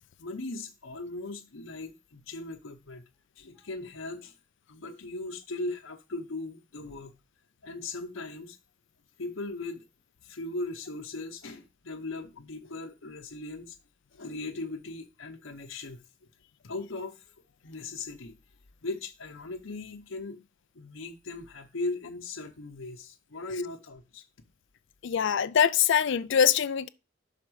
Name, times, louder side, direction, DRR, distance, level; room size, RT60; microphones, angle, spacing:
voice 1, 0.2-3.0 3.4-4.3 4.7-7.1 7.6-8.6 9.2-9.9 10.2-13.8 14.1-16.3 16.6-17.2 17.6-18.4 18.8-20.4 20.7-24.2, left 2 dB, 85° left, 0.9 m, -38 dB
voice 2, 25.0-26.9, left 8 dB, 65° left, 0.4 m, -23 dB
5.9 x 4.3 x 6.2 m
head